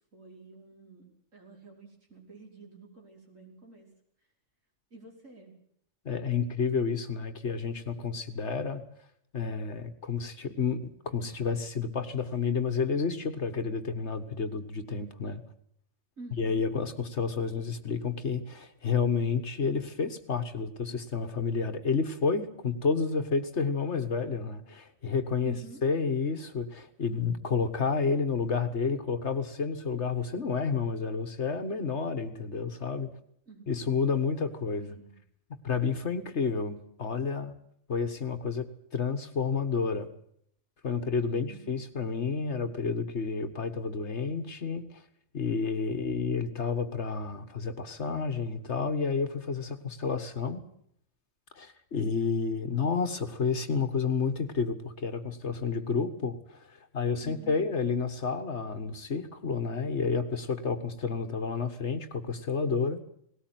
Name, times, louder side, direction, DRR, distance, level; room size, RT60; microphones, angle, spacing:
voice 1, 0.1-3.9 4.9-5.6 16.2-16.6 25.4-25.8 33.5-33.8 34.8-35.2 41.3-41.8 57.2-57.6, right 3 dB, 75° right, -1 dB, 5.8 m, -49 dB
voice 2, 6.1-8.8 9.3-15.4 16.4-25.5 25.8-33.1 33.7-35.0 35.6-37.5 37.9-38.7 38.9-40.1 40.8-45.0 45.3-50.6 51.6-63.0, left 5 dB, 60° left, 9 dB, 1.8 m, -30 dB
19.0 x 18.0 x 9.3 m, 0.68 s
omnidirectional pair, 1.3 m